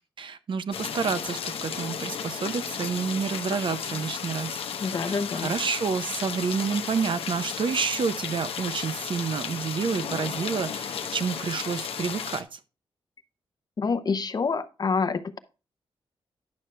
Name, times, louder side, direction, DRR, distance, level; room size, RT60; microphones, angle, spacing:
voice 1, 0.2-4.6 4.9-12.6, right 6 dB, 60° right, 0.7 m, -29 dB
sound 1, 0.7-12.4, left 7 dB, 90° left, 0.8 m, -34 dB
voice 2, 4.8-5.5 13.8-15.4, left 4 dB, 45° left, 0.7 m, -27 dB
10.5 x 6.4 x 3.3 m
wide cardioid pair, 110°, 9 cm